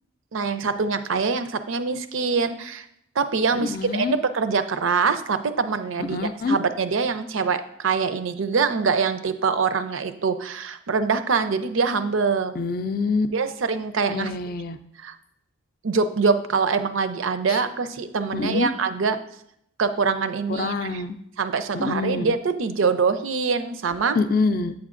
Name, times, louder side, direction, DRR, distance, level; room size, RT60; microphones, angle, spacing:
voice 1, 0.3-2.9 3.2-6.2 6.4-12.5 13.3-14.3 15.0-15.1 15.8-19.2 19.8-21.0 21.4-24.2, right 5 dB, 75° right, 11 dB, 0.5 m, -24 dB
voice 2, 3.5-4.2 6.1-6.6 12.5-13.3 14.1-14.8 17.5-17.6 18.3-18.7 20.5-21.2 21.7-22.3 24.2-24.7, left 4 dB, 45° left, 8 dB, 0.4 m, -25 dB
8.9 x 7.2 x 2.5 m, 0.73 s
head